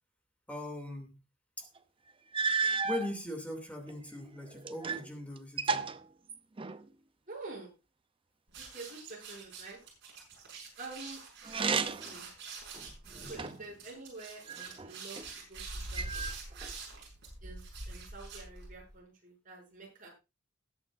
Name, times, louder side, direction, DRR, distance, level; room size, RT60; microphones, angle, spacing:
voice 1, 0.5-1.1 1.6-1.7 2.8-5.9 13.2-13.5, left 1 dB, 5° left, 3 dB, 2.7 m, -40 dB
sound 1, 1.8-1.9 2.3-3.1 3.9-5.1 5.4-6.9 11.4-12.2 12.7-13.7 14.5-15.3 16.0-16.7, right 5 dB, 25° right, 0.6 m, -34 dB
voice 2, 7.3-7.7 8.6-9.8 10.8-11.2 11.6-12.3 13.2-16.1 17.4-20.1, right 3 dB, 40° right, -3 dB, 7.3 m, -47 dB
sound 2, 8.5-18.9, right 3 dB, 60° right, 6.2 m, -45 dB
20.0 x 8.6 x 2.6 m, 0.27 s
head